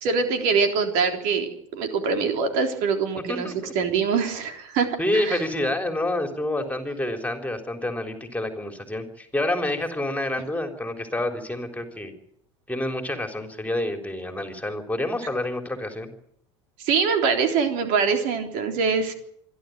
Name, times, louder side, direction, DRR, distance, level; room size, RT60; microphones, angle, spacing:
voice 1, 0.0-5.4 16.8-19.1, right 5 dB, 60° right, 5 dB, 3.7 m, -24 dB
voice 2, 3.3-3.7 5.0-12.1 12.7-16.1, left 1 dB, 10° left, 5 dB, 3.6 m, -28 dB
26.5 x 12.0 x 9.3 m, 0.71 s
hypercardioid pair, 85°, 16 cm